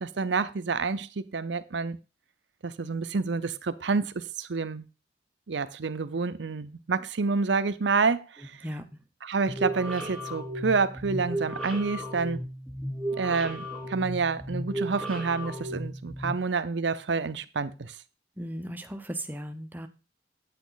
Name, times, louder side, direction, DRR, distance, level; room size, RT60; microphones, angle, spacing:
voice 1, 0.0-2.0 2.6-4.9 5.5-8.5 9.2-12.4 13.2-17.9, right 4 dB, 80° right, 0.7 m, -28 dB
sound 1, 9.5-16.3, right 1 dB, 5° left, 3.7 m, -34 dB
voice 2, 18.4-19.9, right 1 dB, 10° right, 0.8 m, -36 dB
8.8 x 8.4 x 4.0 m
head